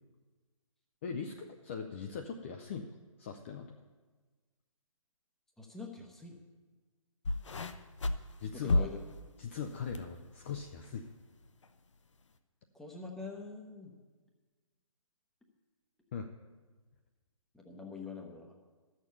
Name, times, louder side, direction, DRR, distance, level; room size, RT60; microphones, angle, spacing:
voice 1, 1.0-2.9 3.2-3.8 8.4-8.9 9.4-11.0 16.1-16.3, left 6 dB, 20° left, 4 dB, 0.5 m, -40 dB
voice 2, 5.6-6.4 8.5-9.0 12.7-13.9 17.5-18.5, left 4 dB, ahead, 1 dB, 0.8 m, -45 dB
sound 1, 7.2-10.1 10.5-10.9 11.6-11.7, left 2 dB, 60° left, 0.8 m, -33 dB
12.5 x 6.6 x 6.9 m, 1.3 s
figure-of-eight pair, 140°, 18 cm